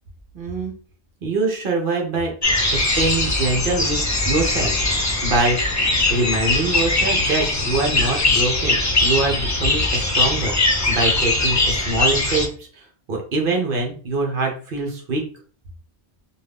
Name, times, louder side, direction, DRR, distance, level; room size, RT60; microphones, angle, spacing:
voice 1, 0.3-0.7 1.2-2.3 2.7-5.8 6.1-10.6 10.9-15.2, right 3 dB, 60° right, 1 dB, 0.8 m, -24 dB
sound 1, 2.4-12.5, left 2 dB, 20° left, 0.5 m, -21 dB
2.5 x 2.3 x 3.3 m, 0.41 s
omnidirectional pair, 1.1 m